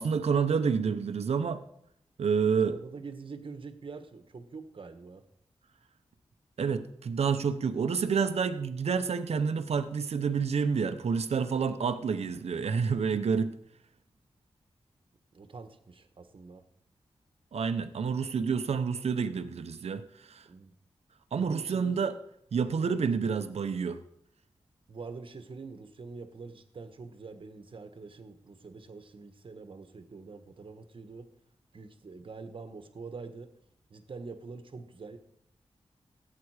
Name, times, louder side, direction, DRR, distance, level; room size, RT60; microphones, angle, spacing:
voice 1, 0.0-1.6 2.2-2.8 6.6-13.5 17.5-20.5 21.3-22.1 22.5-24.0, right 6 dB, 80° right, 8 dB, 0.8 m, -29 dB
voice 2, 2.6-5.2 15.3-16.6 20.4-20.7 21.4-22.0 22.8-23.0 24.9-31.3 31.7-33.5 33.9-35.2, right 4 dB, 55° right, 8 dB, 1.3 m, -45 dB
16.5 x 8.5 x 4.9 m, 0.73 s
wide cardioid pair, 120°, 11 cm